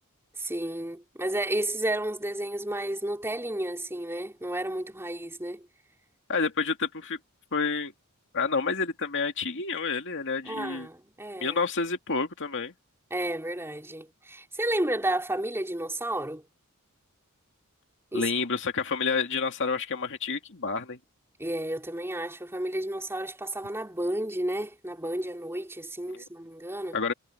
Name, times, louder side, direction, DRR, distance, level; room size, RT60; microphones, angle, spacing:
voice 1, 0.4-5.7 10.4-11.6 13.1-16.5 18.1-18.3 21.4-27.0, right 1 dB, 10° right, 4.0 m, -32 dB
voice 2, 6.3-7.2 7.5-7.9 8.3-10.9 11.4-12.7 18.1-21.0 26.1-26.2 26.9-27.1, left 4 dB, 60° left, 2.3 m, -29 dB
head